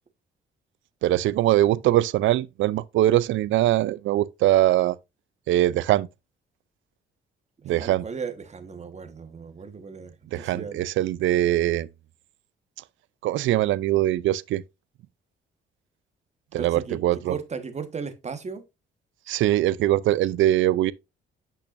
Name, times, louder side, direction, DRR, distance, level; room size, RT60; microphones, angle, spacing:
voice 1, 1.0-5.0 5.5-6.1 7.7-8.0 10.3-11.9 13.2-14.6 16.5-17.3 19.3-20.9, right 14 dB, 75° right, 0.5 m, -22 dB
voice 2, 7.6-10.8 16.6-18.6, right 5 dB, 35° right, 1.3 m, -36 dB
8.5 x 5.8 x 2.5 m
cardioid pair, 90°, 20 cm